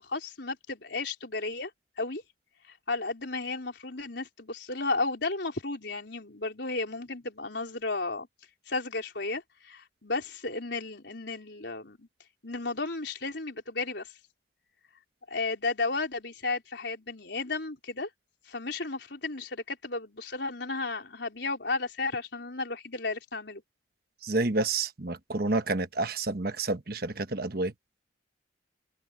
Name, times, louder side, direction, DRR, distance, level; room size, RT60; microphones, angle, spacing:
voice 1, 0.0-1.7 2.0-2.2 2.9-8.3 8.7-12.1 12.4-14.1 15.3-18.1 18.5-23.6, left 3 dB, 70° left, 4.2 m, -33 dB
voice 2, 24.2-27.7, right 2 dB, 55° right, 1.2 m, -29 dB
head